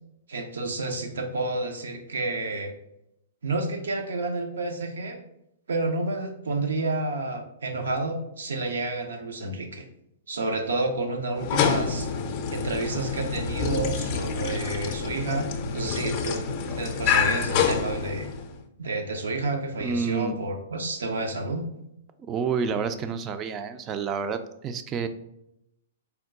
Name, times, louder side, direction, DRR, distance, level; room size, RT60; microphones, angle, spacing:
voice 1, 0.3-2.7 3.4-5.2 5.7-9.9 10.3-12.1 12.5-16.5 16.7-18.3 18.8-21.7, right 2 dB, 80° right, 4 dB, 0.7 m, -30 dB
sound 1, 11.4-18.6, left 6 dB, 40° left, 0.5 m, -27 dB
voice 2, 19.8-20.4 22.2-25.1, right 5 dB, 25° right, 10 dB, 0.4 m, -29 dB
4.4 x 2.2 x 3.7 m, 0.81 s
hypercardioid pair, 120°, 0 cm